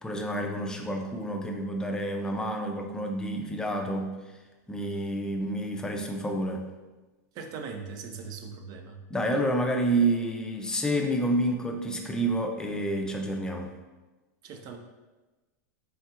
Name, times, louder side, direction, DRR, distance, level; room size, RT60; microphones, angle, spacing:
voice 1, 0.0-4.2 4.7-6.6 9.1-13.7, right 1 dB, 5° left, 3 dB, 0.5 m, -29 dB
voice 2, 7.3-9.0 14.4-14.8, right 5 dB, 40° right, 5 dB, 0.5 m, -40 dB
4.2 x 3.8 x 2.5 m, 1.2 s
hypercardioid pair, 115°, 9 cm